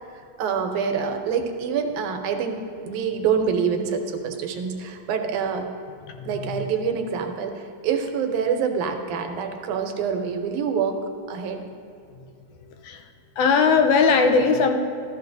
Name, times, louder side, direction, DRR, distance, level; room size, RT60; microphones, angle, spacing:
voice 1, 0.4-5.7 6.3-11.0 11.3-11.6, right 6 dB, 90° right, 5 dB, 2.3 m, -26 dB
voice 2, 13.4-14.8, left 5 dB, 80° left, 5 dB, 2.1 m, -18 dB
13.5 x 13.0 x 2.6 m, 2.4 s
omnidirectional pair, 3.4 m